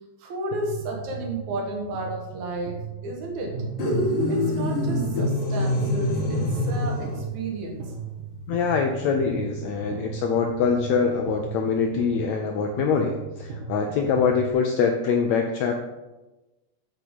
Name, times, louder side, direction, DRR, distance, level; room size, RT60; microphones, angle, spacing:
voice 1, 0.2-3.5 4.3-7.9, right 2 dB, 60° right, 1 dB, 2.5 m, -33 dB
sound 1, 0.5-14.5, right 5 dB, 80° right, 2.8 m, -37 dB
sound 2, 3.8-7.3, left 1 dB, 60° left, 1.8 m, -25 dB
Guitar, 3.8-7.1, right 1 dB, 15° left, 2.8 m, -37 dB
voice 2, 8.5-15.7, left 6 dB, 85° left, 3 dB, 1.5 m, -24 dB
8.6 x 5.9 x 5.3 m, 1.1 s
omnidirectional pair, 4.0 m